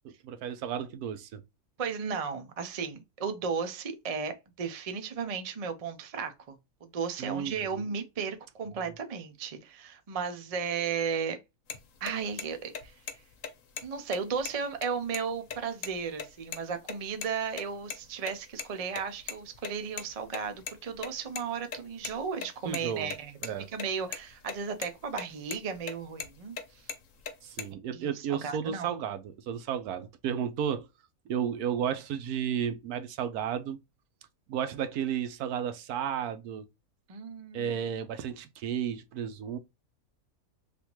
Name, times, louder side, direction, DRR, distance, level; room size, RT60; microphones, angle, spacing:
voice 1, 0.2-1.4 7.2-7.8 8.7-8.8 22.6-23.1 23.4-23.7 27.4-30.9 31.3-33.8 34.5-36.6 37.5-39.6, right 8 dB, 80° right, 1.1 m, -33 dB
voice 2, 1.8-6.5 6.8-11.4 12.0-12.9 13.8-26.6 27.9-28.9 37.1-37.8, right 6 dB, 55° right, 0.4 m, -35 dB
sound 1, 11.7-11.8 12.1-12.2 12.4-12.5 12.7-13.1 13.4-13.5 13.8-13.9 14.1-15.2 15.5-15.6 15.8-15.9 16.2-16.6 16.9-17.3 17.6-18.6 18.9-21.4 21.7-23.5 23.8-23.9 24.1-24.5 24.8-25.2 25.5-26.6 26.9-27.6, left 7 dB, 65° left, 1.1 m, -37 dB
3.5 x 2.5 x 2.9 m
omnidirectional pair, 1.6 m